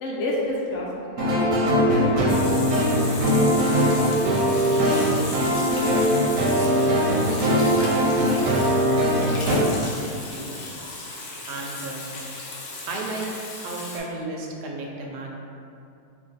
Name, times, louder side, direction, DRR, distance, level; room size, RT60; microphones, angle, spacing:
voice 1, 0.0-2.6, left 1 dB, 65° left, -3 dB, 0.7 m, -30 dB
sound 1, 1.2-9.5, equal, 65° right, 1.0 m, -21 dB
Water tap faucet / Sink (filling or washing), 2.3-14.0, left 2 dB, 80° left, 1.2 m, -36 dB
voice 2, 7.5-7.9 8.3-8.8 9.5-9.7 10.3-10.5 11.5-12.1 12.9-15.3, right 2 dB, 85° right, 0 dB, 1.1 m, -34 dB
3.1 x 2.6 x 3.8 m, 2.6 s
omnidirectional pair, 1.7 m